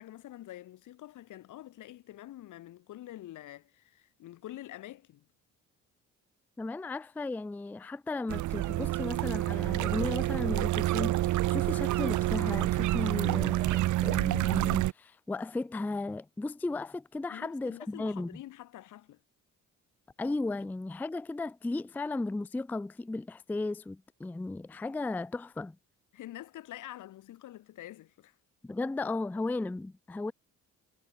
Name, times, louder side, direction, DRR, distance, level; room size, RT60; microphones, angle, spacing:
voice 1, 0.0-5.3 17.3-19.2 26.1-28.3, left 14 dB, 80° left, 2.7 m, -46 dB
voice 2, 6.6-18.4 20.2-25.8 28.6-30.3, left 2 dB, 5° left, 0.4 m, -35 dB
sound 1, 8.3-14.9, right 16 dB, 75° right, 0.8 m, -28 dB
cardioid pair, 90°, 30 cm